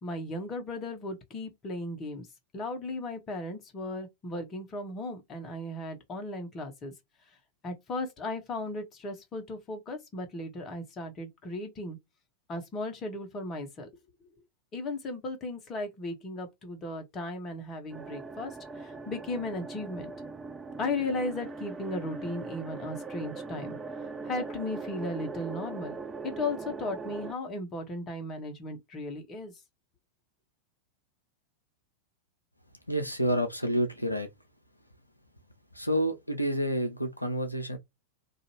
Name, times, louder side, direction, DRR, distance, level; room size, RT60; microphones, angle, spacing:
voice 1, 0.0-2.3 2.5-6.9 7.6-12.0 12.5-13.9 14.7-20.1 20.8-23.8 24.2-26.0 26.2-29.5, left 2 dB, 25° left, 0.9 m, -36 dB
sound 1, 17.9-27.3, right 4 dB, 15° right, 0.3 m, -40 dB
voice 2, 32.9-34.3 35.7-37.8, equal, 90° left, 0.4 m, -29 dB
2.6 x 2.4 x 2.8 m
figure-of-eight pair, 90°, 0 cm